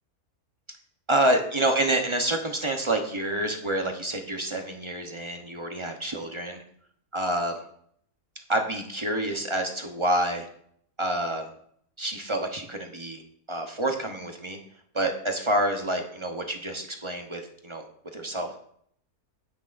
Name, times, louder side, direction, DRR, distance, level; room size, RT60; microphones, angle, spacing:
voice 1, 1.1-6.6 7.1-7.6 8.5-10.5 11.0-11.5 12.0-13.2 13.5-14.6 14.9-17.8 18.1-18.6, right 1 dB, 30° right, 4 dB, 0.6 m, -28 dB
16.0 x 6.1 x 2.5 m, 0.66 s
omnidirectional pair, 1.7 m